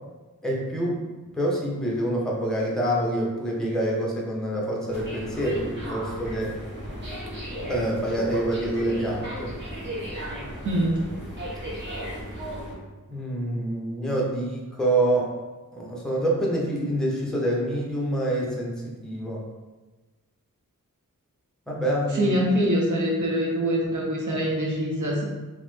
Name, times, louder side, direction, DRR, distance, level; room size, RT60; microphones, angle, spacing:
voice 1, 0.4-1.0 1.3-6.5 7.7-9.5 13.1-15.3 15.7-19.4 21.7-22.4, right 1 dB, ahead, -3 dB, 0.6 m, -26 dB
sound 1, 4.9-12.7, equal, 35° right, 0.9 m, -35 dB
voice 2, 10.6-11.0 22.1-25.2, equal, 60° right, -2 dB, 0.7 m, -24 dB
3.0 x 2.1 x 3.1 m, 1.2 s
wide cardioid pair, 100°, 33 cm